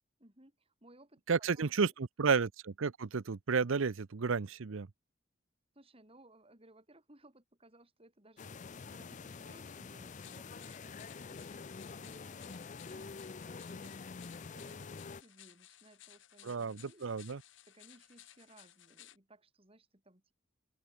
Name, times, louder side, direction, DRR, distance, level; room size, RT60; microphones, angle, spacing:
voice 1, 0.2-1.9 5.7-17.1 17.7-20.3, right 1 dB, 30° right, 4.3 m, -62 dB
voice 2, 1.3-4.9 16.4-17.4, right 5 dB, 80° right, 0.6 m, -32 dB
sound 1, 8.4-15.2, left 5 dB, 40° left, 0.5 m, -47 dB
sound 2, 10.0-19.2, left 13 dB, 70° left, 1.7 m, -59 dB
open air
head